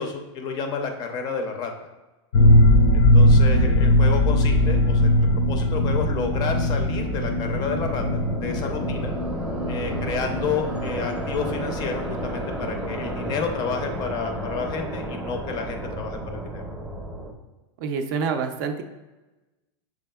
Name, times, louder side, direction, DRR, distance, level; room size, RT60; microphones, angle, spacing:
voice 1, 0.0-1.7 2.9-9.1 9.7-16.6, left 5 dB, 25° left, 5 dB, 0.5 m, -30 dB
sound 1, 2.3-11.9 12.2-12.3 12.6-12.7, left 1 dB, 80° left, 0.5 m, -20 dB
sound 2, 4.6-17.3, right 1 dB, 10° right, 0.7 m, -32 dB
voice 2, 17.8-18.8, right 5 dB, 45° right, 6 dB, 0.4 m, -27 dB
6.3 x 3.5 x 2.2 m, 1.1 s
supercardioid pair, 155°, 15 cm